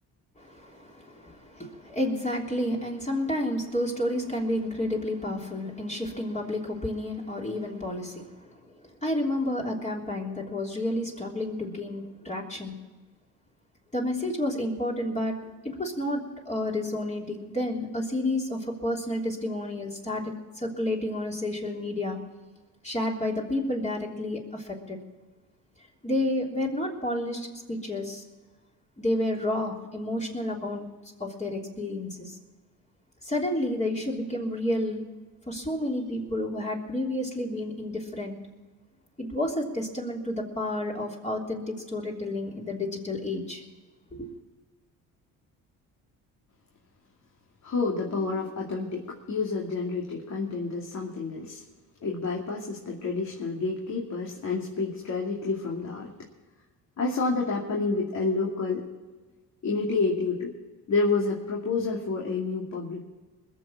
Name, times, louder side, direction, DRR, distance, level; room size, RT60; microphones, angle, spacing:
voice 1, 0.4-8.7 9.0-12.8 13.9-15.3 15.6-22.2 22.8-25.0 26.0-28.2 29.0-30.9 31.2-32.4 33.2-35.0 35.5-38.4 39.2-43.6 44.1-44.3, left 1 dB, 20° left, -2 dB, 3.3 m, -30 dB
voice 2, 47.6-51.6 52.0-56.1 57.0-58.9 59.6-60.5 60.9-63.0, left 4 dB, 50° left, -2 dB, 2.6 m, -29 dB
21.0 x 7.1 x 7.2 m, 1.3 s
supercardioid pair, 75°, 36 cm